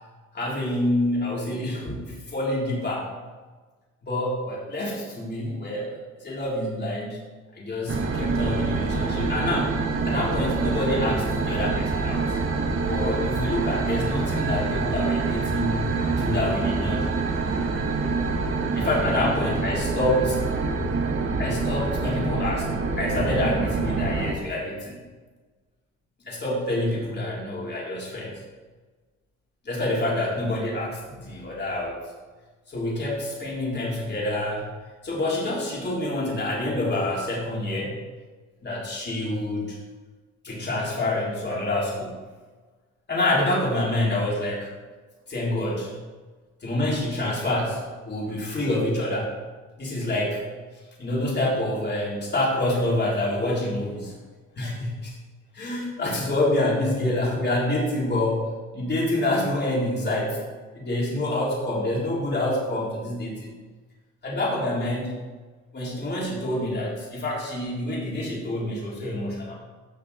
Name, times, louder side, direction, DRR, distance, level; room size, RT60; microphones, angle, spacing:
voice 1, 0.3-3.1 4.0-7.2 7.6-9.7 10.1-12.2 12.8-17.1 18.7-20.4 21.4-25.0 26.3-28.3 29.7-32.0 32.7-34.7 35.0-38.0 38.6-39.8 40.4-42.2 43.1-44.7 45.3-45.9 46.6-49.3 49.8-50.4 51.0-54.1 54.6-55.1 55.5-60.4 60.7-63.5 64.2-65.2 65.7-69.5, left 1 dB, 35° left, -4 dB, 3.8 m, -27 dB
sound 1, 7.9-24.3, right 4 dB, 45° right, 1.5 m, -26 dB
15.5 x 6.1 x 4.3 m, 1.3 s
cardioid pair, 90°, 30 cm